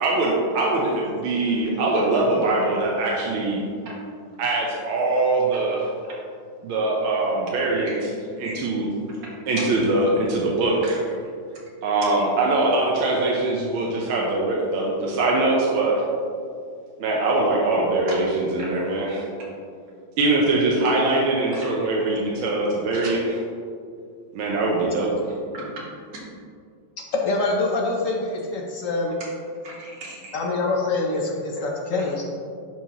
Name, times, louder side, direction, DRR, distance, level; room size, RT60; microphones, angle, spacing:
voice 1, 0.0-3.6 4.4-5.9 6.6-8.0 8.4-8.9 9.5-11.0 11.8-16.0 17.0-19.2 20.2-23.2 24.3-25.1, right 2 dB, 90° right, -3 dB, 1.7 m, -22 dB
voice 2, 9.2-9.7 18.1-18.2 18.6-18.7 21.5-21.7 22.9-23.2 25.5-25.9 26.1-26.2 29.6-30.4, right 2 dB, 65° right, -4 dB, 2.2 m, -36 dB
voice 3, 27.1-29.1 30.3-32.2, left 3 dB, 65° left, 0 dB, 0.8 m, -25 dB
11.0 x 4.6 x 3.0 m, 2.3 s
omnidirectional pair, 2.2 m